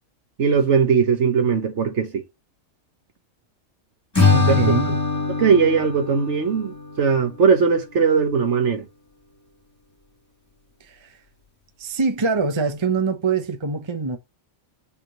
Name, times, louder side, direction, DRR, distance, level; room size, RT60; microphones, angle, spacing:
voice 1, 0.4-2.2 5.4-8.9, right 6 dB, 60° right, 1.4 m, -19 dB
Acoustic guitar / Strum, 4.1-7.4, left 4 dB, 15° left, 2.0 m, -22 dB
voice 2, 4.3-5.0 10.8-11.2 11.8-14.2, right 4 dB, 25° right, 0.8 m, -24 dB
5.8 x 3.7 x 6.0 m
omnidirectional pair, 1.4 m